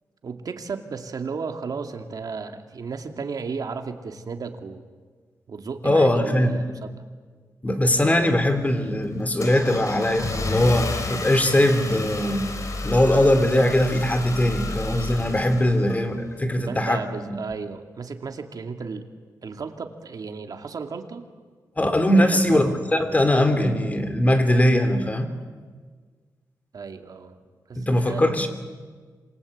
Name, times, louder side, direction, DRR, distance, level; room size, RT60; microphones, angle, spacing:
voice 1, 0.2-4.8 5.5-6.9 16.6-19.1 19.4-21.2 22.2-22.8 26.7-27.4 27.7-28.3, right 5 dB, 60° right, 6 dB, 2.4 m, -34 dB
voice 2, 5.8-6.6 7.6-12.5 12.8-17.0 17.3-17.4 21.8-25.3 27.7-28.5, left 1 dB, 20° left, 8 dB, 3.2 m, -21 dB
Car / Engine starting, 8.1-16.3, left 2 dB, 50° left, 3.8 m, -31 dB
27.0 x 23.0 x 8.6 m, 1.5 s
wide cardioid pair, 95°, 7 cm